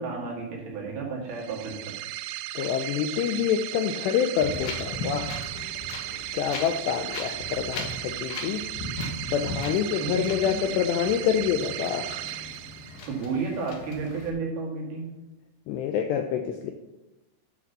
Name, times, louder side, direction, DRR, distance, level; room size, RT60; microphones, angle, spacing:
voice 1, 0.0-1.9 10.0-10.8 13.1-15.1, right 4 dB, 60° right, -2 dB, 3.5 m, -32 dB
sound 1, 1.3-13.3, right 15 dB, 85° right, 3.1 m, -36 dB
voice 2, 2.6-5.3 6.3-8.6 9.3-12.1 15.7-16.7, left 8 dB, 85° left, 6 dB, 2.4 m, -27 dB
Wind, 4.4-14.3, left 2 dB, 65° left, 2.7 m, -38 dB
11.0 x 5.3 x 6.6 m, 1.0 s
omnidirectional pair, 5.6 m